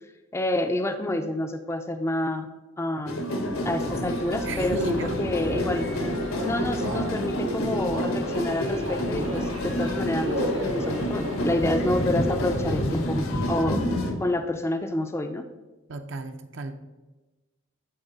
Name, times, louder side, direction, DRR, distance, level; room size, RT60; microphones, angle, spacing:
voice 1, 0.3-2.5 2.8-3.3 3.6-5.9 6.4-13.8 14.2-15.4, left 1 dB, 15° left, 7 dB, 0.3 m, -28 dB
sound 1, 3.1-14.1, equal, 90° left, 1.2 m, -29 dB
sound 2, 3.6-13.7, left 2 dB, 70° left, 0.7 m, -40 dB
voice 2, 4.4-5.3 15.9-16.7, right 2 dB, 60° right, 7 dB, 0.6 m, -33 dB
sound 3, 5.4-12.0, equal, 80° right, 1.3 m, -35 dB
10.5 x 4.0 x 4.0 m, 1.2 s
head